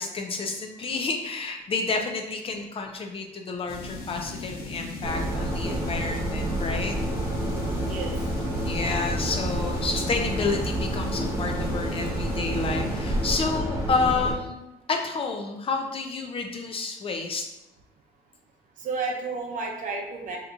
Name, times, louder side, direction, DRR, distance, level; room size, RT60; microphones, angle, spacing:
voice 1, 0.0-7.0 8.6-14.6 14.9-17.5, left 4 dB, 35° left, 3 dB, 0.4 m, -30 dB
sound 1, 3.7-13.6, left 2 dB, 65° left, 0.7 m, -38 dB
sound 2, 5.0-14.3, right 1 dB, 20° right, 0.8 m, -29 dB
voice 2, 18.8-20.4, right 4 dB, 50° right, 1 dB, 0.7 m, -31 dB
2.8 x 2.2 x 3.7 m, 0.89 s
cardioid pair, 110°, 17 cm